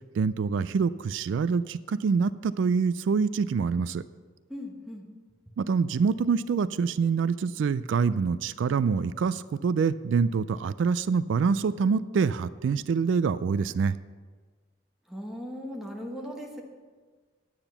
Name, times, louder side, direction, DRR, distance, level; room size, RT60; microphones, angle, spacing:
voice 1, 0.1-4.0 5.6-14.0, right 5 dB, 85° right, 16 dB, 0.3 m, -26 dB
voice 2, 4.5-5.1 15.1-16.6, equal, ahead, -1 dB, 1.3 m, -38 dB
10.0 x 8.9 x 5.7 m, 1.5 s
head